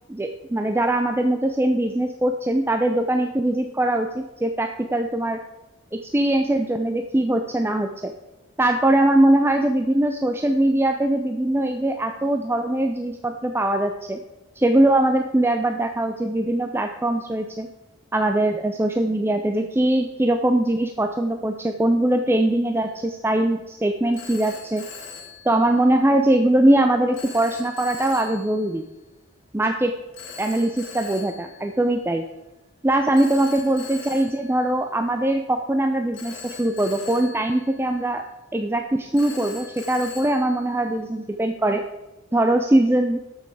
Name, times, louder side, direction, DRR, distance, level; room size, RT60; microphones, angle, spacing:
voice 1, 0.1-5.4 5.9-8.1 8.6-14.2 14.6-17.7 18.1-24.8 25.4-28.8 29.5-29.9 30.4-32.2 32.8-38.2 38.5-41.8 42.3-43.2, right 1 dB, 10° right, 5 dB, 0.4 m, -21 dB
Telephone, 22.9-23.2 24.1-26.2 27.1-28.9 30.1-32.3 33.1-35.5 36.1-38.5 39.1-41.4, left 5 dB, 60° left, 2.0 m, -42 dB
12.5 x 6.3 x 4.7 m, 1.0 s
head